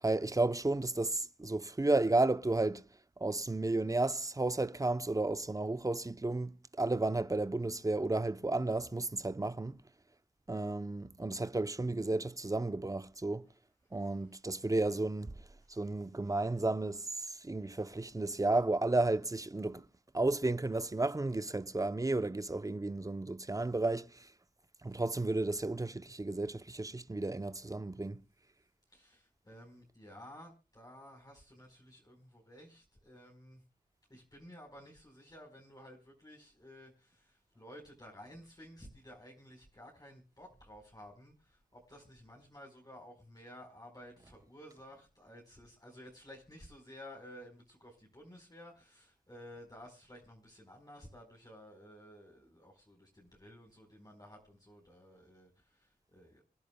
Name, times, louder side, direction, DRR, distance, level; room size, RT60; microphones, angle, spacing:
voice 1, 0.0-2.8 3.2-9.8 10.5-13.5 13.9-19.9 20.1-24.3 24.8-28.2, right 2 dB, 20° right, 0.8 m, -33 dB
voice 2, 28.9-33.6 34.1-56.4, equal, 25° left, 4.6 m, -54 dB
26.0 x 10.5 x 2.3 m
wide cardioid pair, 60°, 16 cm